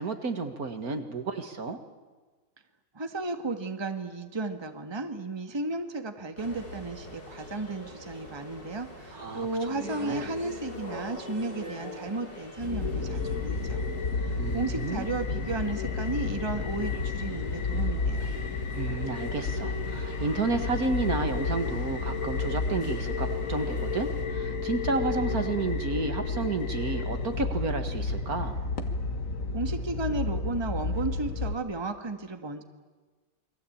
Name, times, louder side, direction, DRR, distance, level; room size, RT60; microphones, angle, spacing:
voice 1, 0.0-1.8 9.1-10.2 14.4-15.1 18.7-28.6, right 3 dB, 60° right, 7 dB, 2.2 m, -31 dB
voice 2, 2.9-13.9 14.2-18.3 29.5-32.6, right 3 dB, 15° right, 7 dB, 1.5 m, -34 dB
sound 1, 6.4-24.3, left 1 dB, 90° left, 6.7 m, -45 dB
sound 2, 12.6-31.5, left 4 dB, 50° left, 1.9 m, -31 dB
29.0 x 22.5 x 8.7 m, 1.3 s
omnidirectional pair, 1.8 m